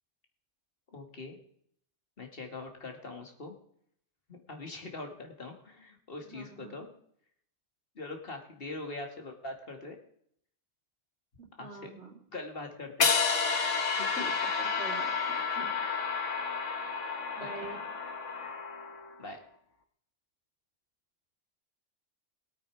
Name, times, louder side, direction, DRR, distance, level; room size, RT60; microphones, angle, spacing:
voice 1, 0.9-1.4 2.2-3.5 4.3-6.9 8.0-10.0 11.6-11.9 12.3-13.1 14.0-14.2 17.4-17.5 19.2-19.4, left 2 dB, 50° left, 3 dB, 2.4 m, -42 dB
voice 2, 6.2-6.9 11.4-12.2 13.8-15.8 17.4-17.9, right 3 dB, 65° right, 2 dB, 3.0 m, -46 dB
sound 1, 13.0-19.1, left 5 dB, 85° left, 1.6 m, -31 dB
21.0 x 8.7 x 4.8 m, 0.67 s
omnidirectional pair, 1.2 m